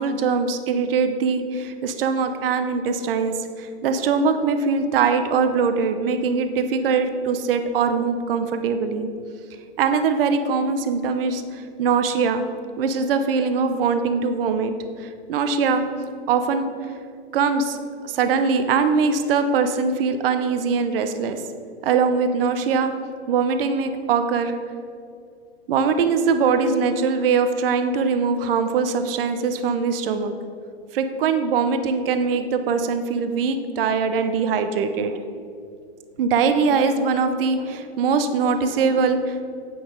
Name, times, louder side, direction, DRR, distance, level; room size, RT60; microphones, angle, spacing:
voice 1, 0.0-9.1 9.8-12.4 12.8-14.7 15.0-15.8 16.3-16.7 17.3-17.8 18.0-21.4 21.8-22.9 23.3-24.5 25.7-30.3 30.9-35.2 36.2-39.4, right 5 dB, 60° right, 8 dB, 0.8 m, -22 dB
8.6 x 5.9 x 5.1 m, 2.4 s
hypercardioid pair, 110°, 32 cm